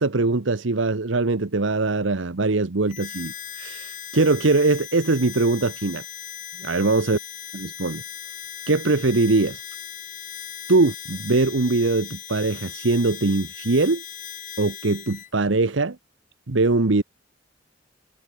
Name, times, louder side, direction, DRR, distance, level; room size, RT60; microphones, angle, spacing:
voice 1, 0.0-6.0 6.6-7.2 7.5-8.0 8.7-9.6 10.7-14.0 14.6-16.0 16.5-17.0, right 3 dB, 75° right, 1.1 m, -22 dB
Harmonica, 2.9-15.3, left 9 dB, 45° left, 5.4 m, -38 dB
head